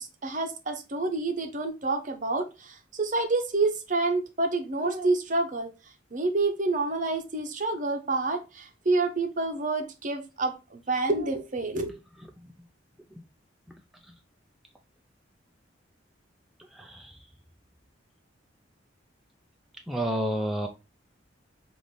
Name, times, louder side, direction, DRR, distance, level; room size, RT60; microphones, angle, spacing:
voice 1, 0.0-5.7 6.1-11.9, right 3 dB, 40° right, 0.7 m, -28 dB
voice 2, 16.7-17.2 19.9-20.7, right 1 dB, ahead, 0.3 m, -31 dB
5.5 x 2.5 x 3.2 m
head